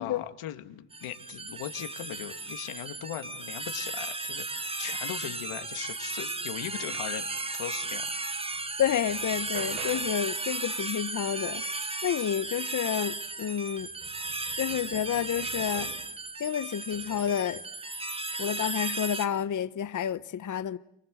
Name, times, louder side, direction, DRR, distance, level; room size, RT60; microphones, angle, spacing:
voice 1, 0.0-7.3 7.5-8.1, left 12 dB, 75° left, 2.5 m, -39 dB
sound 1, 0.9-19.3, right 3 dB, 10° right, 1.0 m, -35 dB
sound 2, 8.0-8.1 8.5-10.3 12.7-12.8 13.2-16.2 16.9-17.5 18.5-18.8, right 5 dB, 75° right, 7.3 m, -47 dB
voice 2, 8.8-11.6 12.0-13.9 14.6-15.9 16.4-17.6 18.3-20.8, left 9 dB, 35° left, 1.0 m, -30 dB
29.5 x 24.5 x 7.9 m
cardioid pair, 115°, 50 cm